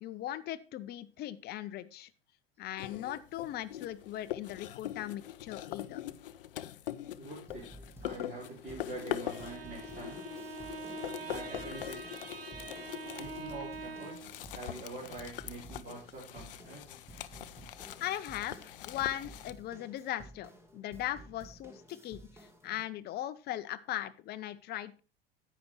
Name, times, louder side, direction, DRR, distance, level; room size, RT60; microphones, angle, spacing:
voice 1, 0.0-2.1 2.6-6.0 18.0-25.0, left 13 dB, 35° left, 14 dB, 0.8 m, -39 dB
sound 1, 2.8-19.5, left 12 dB, 65° left, 0.6 m, -43 dB
voice 2, 7.2-7.7 8.0-10.2 11.3-12.2 13.2-14.2 14.5-17.0, right 3 dB, 35° right, -5 dB, 3.9 m, -45 dB
sound 2, 7.5-22.8, right 1 dB, 10° right, 1.8 m, -54 dB
Bowed string instrument, 9.1-14.4, right 4 dB, 85° right, 0.8 m, -45 dB
10.5 x 8.8 x 3.1 m, 0.35 s
figure-of-eight pair, 80°, 29 cm